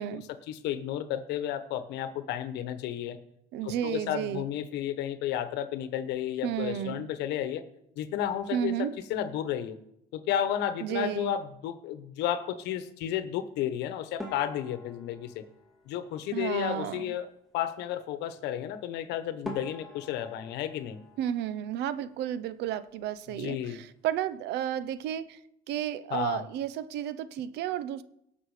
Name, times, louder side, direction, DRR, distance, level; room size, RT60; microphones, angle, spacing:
voice 1, 0.0-3.2 3.6-7.6 8.0-9.8 10.1-15.4 15.9-21.0 23.3-23.9 26.1-26.4, left 10 dB, 90° left, 1.1 m, -32 dB
voice 2, 3.5-4.5 6.4-7.0 8.5-8.9 10.8-11.3 16.3-17.1 21.2-25.4 25.7-28.0, right 11 dB, 85° right, 0.7 m, -32 dB
sound 1, 14.2-16.6 18.9-19.0 19.4-22.2 22.5-23.2 23.5-23.7 24.1-24.2 24.8-25.1, left 1 dB, ahead, 2.7 m, -45 dB
18.5 x 6.1 x 4.9 m
cardioid pair, 110°, 17 cm